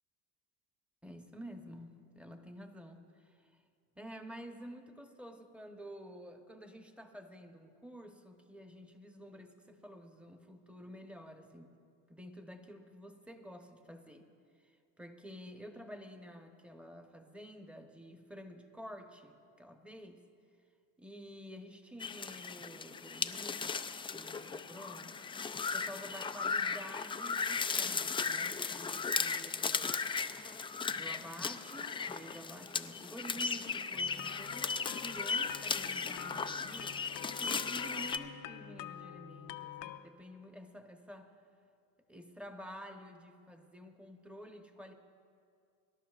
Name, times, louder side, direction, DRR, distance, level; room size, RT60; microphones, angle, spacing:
voice 1, 1.0-3.4 4.0-11.8 12.1-14.3 14.6-20.2 21.0-30.0 30.7-41.3 42.1-44.9, equal, 5° right, 5 dB, 1.0 m, -50 dB
sound 1, 22.0-38.2, left 5 dB, 15° left, 0.3 m, -36 dB
sound 2, 33.9-40.0, left 11 dB, 80° left, 0.7 m, -47 dB
24.0 x 11.5 x 2.5 m, 2.3 s
supercardioid pair, 95°, 39 cm